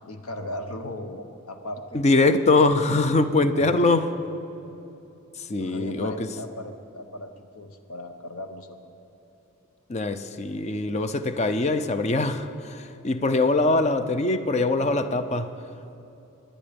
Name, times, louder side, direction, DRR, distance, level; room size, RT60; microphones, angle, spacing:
voice 1, 0.0-2.0 3.5-3.8 5.6-8.9, left 1 dB, 80° left, 7 dB, 1.1 m, -37 dB
voice 2, 1.9-4.1 5.4-6.3 9.9-15.6, left 2 dB, 30° left, 10 dB, 0.5 m, -23 dB
24.0 x 10.0 x 5.2 m, 2.9 s
head